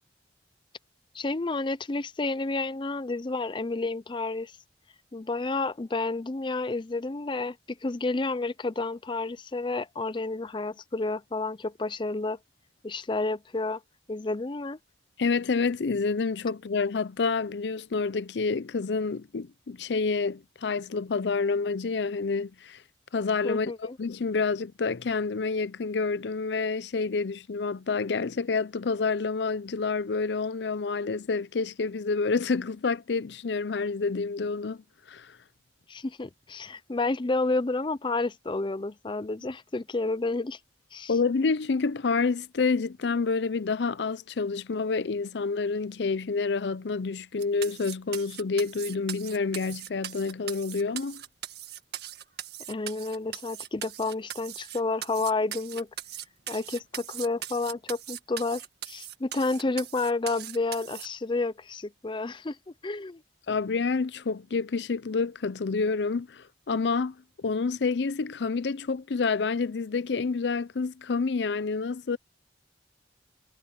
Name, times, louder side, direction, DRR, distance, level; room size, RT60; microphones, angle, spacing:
voice 1, 1.1-4.5 5.1-12.4 12.8-13.8 14.1-14.8 23.4-24.0 35.9-40.6 40.9-41.1 52.7-55.9 56.5-62.6 62.8-63.2, left 3 dB, 25° left, 0.5 m, -30 dB
voice 2, 15.2-22.8 23.1-23.7 24.0-34.8 35.1-35.4 41.1-51.2 63.5-72.2, left 4 dB, 75° left, 0.5 m, -28 dB
sound 1, 47.4-61.1, right 11 dB, 65° right, 1.9 m, -40 dB
head